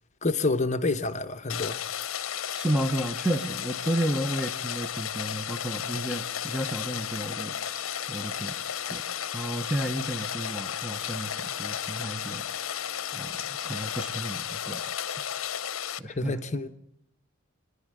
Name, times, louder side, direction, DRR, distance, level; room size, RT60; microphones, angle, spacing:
voice 1, 0.2-1.8 16.0-16.7, left 3 dB, 35° left, 0.9 m, -28 dB
Rain, 1.5-16.0, left 9 dB, 75° left, 0.7 m, -34 dB
voice 2, 2.5-8.5 8.9-9.0 9.3-12.4 13.1-15.0 16.0-16.4, right 1 dB, 5° right, 0.9 m, -32 dB
Wind instrument woodwind instrument, 5.4-14.0, equal, 20° right, 6.1 m, -55 dB
27.5 x 11.0 x 9.0 m
head